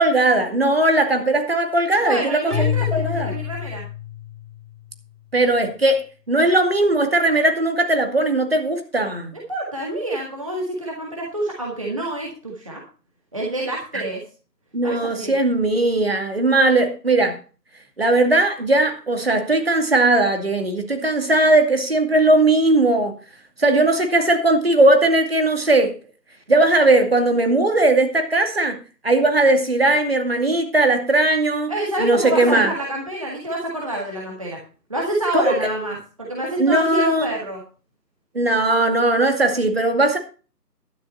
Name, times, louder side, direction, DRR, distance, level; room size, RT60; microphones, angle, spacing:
voice 1, 0.0-3.3 5.3-9.4 14.7-17.4 18.0-23.1 23.6-25.9 26.5-28.8 29.0-31.7 32.0-32.7 35.3-35.6 36.6-37.3 38.3-40.2, right 2 dB, 35° right, 2.4 m, -18 dB
voice 2, 2.0-3.8 9.3-12.8 13.3-14.2 14.8-15.3 31.7-34.6 34.9-37.6, right 1 dB, 20° right, 1.8 m, -27 dB
Keyboard (musical), 2.5-4.8, left 10 dB, 60° right, 2.2 m, -26 dB
12.0 x 9.3 x 4.3 m
figure-of-eight pair, 170°, 49 cm